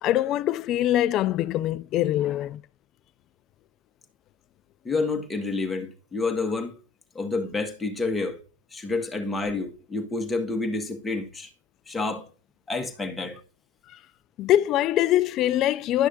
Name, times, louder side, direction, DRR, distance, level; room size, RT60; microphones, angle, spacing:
voice 1, 0.0-2.6 13.9-14.0 14.4-16.1, left 13 dB, 35° left, 0.3 m, -23 dB
voice 2, 4.8-6.8 7.1-8.4 8.7-11.5 11.9-12.3 12.7-13.4, left 3 dB, 10° left, 1.4 m, -29 dB
11.5 x 6.2 x 2.6 m
hypercardioid pair, 115°, 0 cm